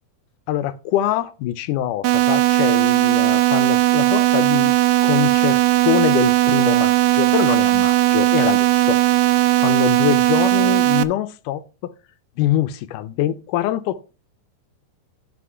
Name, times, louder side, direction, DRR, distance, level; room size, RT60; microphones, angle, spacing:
voice 1, 0.5-4.7 5.0-9.0 9.6-11.9 12.4-14.0, left 12 dB, 80° left, 2.0 m, -24 dB
sound 1, 2.0-11.0, right 15 dB, 85° right, 1.6 m, -17 dB
8.6 x 5.0 x 5.5 m
omnidirectional pair, 3.9 m